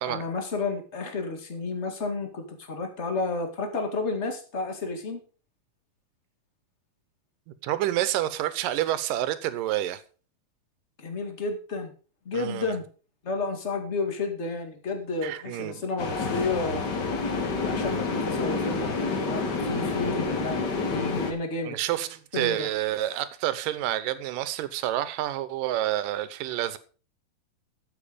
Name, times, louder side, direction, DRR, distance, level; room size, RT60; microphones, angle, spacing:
voice 1, 0.1-5.2 11.0-11.9 12.2-12.8 13.2-16.9 17.6-21.8 22.3-22.7, left 3 dB, 30° left, 1.5 m, -31 dB
voice 2, 7.6-10.0 12.3-12.7 15.2-15.8 21.6-26.8, right 13 dB, 85° right, 2.5 m, -28 dB
sound 1, 16.0-21.3, left 4 dB, 45° left, 1.5 m, -28 dB
12.5 x 7.7 x 5.1 m
omnidirectional pair, 3.9 m